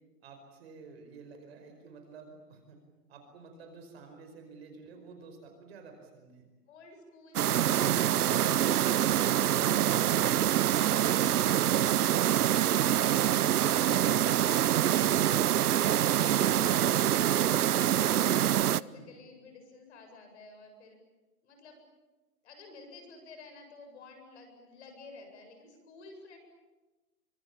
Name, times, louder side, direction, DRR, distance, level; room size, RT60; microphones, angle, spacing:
voice 1, 0.2-2.8 3.1-6.5 18.9-19.0, right 4 dB, 40° right, 5 dB, 5.1 m, -51 dB
voice 2, 6.7-18.5 18.7-21.0 21.4-21.8 22.4-26.4, left 3 dB, 45° left, 5 dB, 7.8 m, -52 dB
sound 1, 7.4-18.8, right 11 dB, 70° right, 0.8 m, -25 dB
25.0 x 24.0 x 8.7 m, 1.2 s
hypercardioid pair, 170°, 47 cm